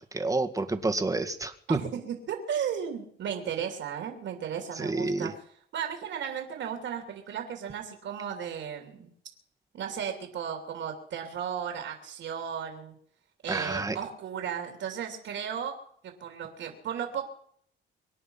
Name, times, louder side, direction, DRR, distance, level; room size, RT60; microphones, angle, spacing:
voice 1, 0.0-1.8 4.8-5.3 13.5-14.0, right 3 dB, 15° right, 7 dB, 1.9 m, -29 dB
voice 2, 1.7-5.4 5.7-9.1 9.7-13.0 13.4-15.8 16.0-17.2, right 8 dB, 75° right, 3 dB, 3.0 m, -35 dB
25.0 x 9.8 x 5.7 m, 0.64 s
cardioid pair, 90°, 20 cm